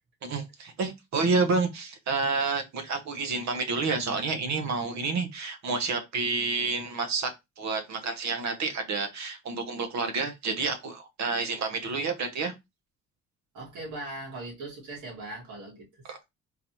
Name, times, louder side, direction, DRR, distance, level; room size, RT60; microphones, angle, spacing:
voice 1, 0.2-7.3 7.6-12.5 16.1-16.2, right 4 dB, 65° right, 0.9 m, -29 dB
voice 2, 13.5-16.2, right 2 dB, 85° right, 2.1 m, -40 dB
3.9 x 2.7 x 3.0 m
cardioid pair, 90°, 30 cm